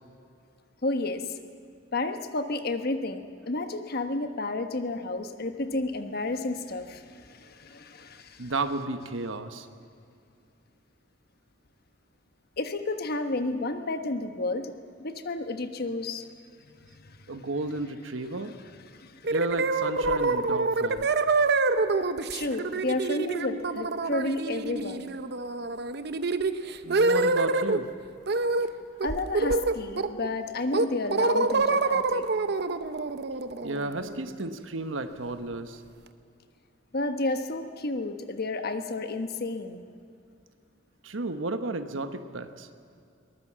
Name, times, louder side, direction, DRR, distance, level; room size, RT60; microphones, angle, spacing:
voice 1, 0.8-1.2 1.9-8.5 12.6-14.7 15.0-16.3 17.3-17.4 18.9-19.3 22.3-25.1 29.0-32.2 36.9-39.8, left 2 dB, 55° left, 8 dB, 1.2 m, -31 dB
voice 2, 8.4-9.7 17.3-18.5 19.3-21.1 26.8-27.9 33.6-35.8 41.0-42.7, right 2 dB, 85° right, 9 dB, 1.2 m, -33 dB
sound 1, 19.2-27.8 28.3-28.7 29.0-30.3 30.7-34.5, right 3 dB, 55° right, 0.9 m, -26 dB
22.5 x 19.0 x 7.4 m, 2.4 s
head